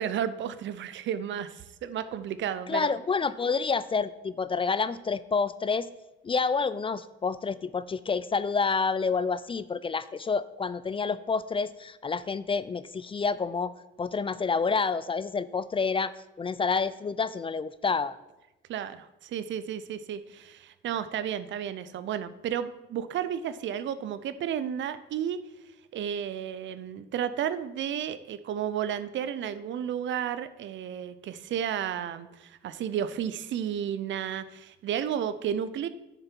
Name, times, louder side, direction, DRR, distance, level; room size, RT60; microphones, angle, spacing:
voice 1, 0.0-3.0 18.7-25.4 25.9-35.9, right 9 dB, 70° right, 14 dB, 0.6 m, -32 dB
voice 2, 2.7-5.9 6.2-13.7 14.0-16.1 16.4-18.2, left 5 dB, 25° left, 15 dB, 0.4 m, -28 dB
9.6 x 6.8 x 4.5 m, 0.97 s
cardioid pair, 90°, 20 cm